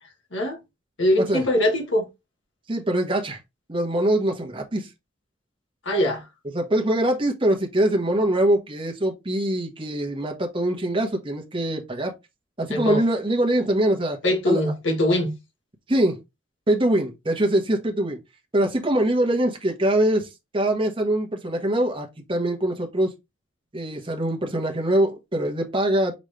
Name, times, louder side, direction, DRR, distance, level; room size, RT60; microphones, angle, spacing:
voice 1, 1.0-2.1 5.8-6.2 12.7-13.0 14.2-15.3, left 1 dB, 70° left, 1.4 m, -22 dB
voice 2, 2.7-3.4 3.7-4.9 6.5-12.1 12.6-14.2 14.5-14.6 15.9-16.2 16.7-18.2 18.5-20.3 20.5-23.1 23.7-26.1, right 1 dB, 25° right, 1.0 m, -23 dB
5.2 x 3.1 x 3.2 m
head